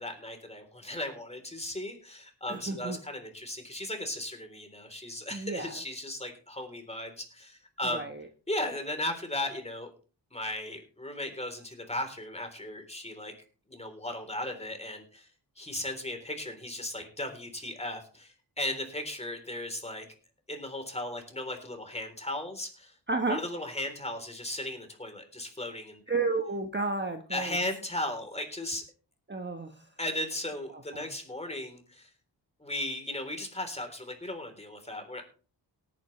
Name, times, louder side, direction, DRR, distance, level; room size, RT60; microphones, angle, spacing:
voice 1, 0.0-8.1 8.5-9.9 10.3-13.3 13.7-15.3 15.6-20.1 20.5-22.9 23.3-26.2 27.3-28.8 30.0-32.1 32.6-35.2, left 1 dB, 15° left, 5 dB, 3.6 m, -36 dB
voice 2, 2.5-3.0 5.3-5.7 7.8-8.3 23.1-23.4 26.1-27.6 29.3-29.9 30.7-31.1, right 3 dB, 25° right, 5 dB, 1.3 m, -32 dB
18.0 x 9.7 x 3.3 m, 0.39 s
cardioid pair, 85°, 44 cm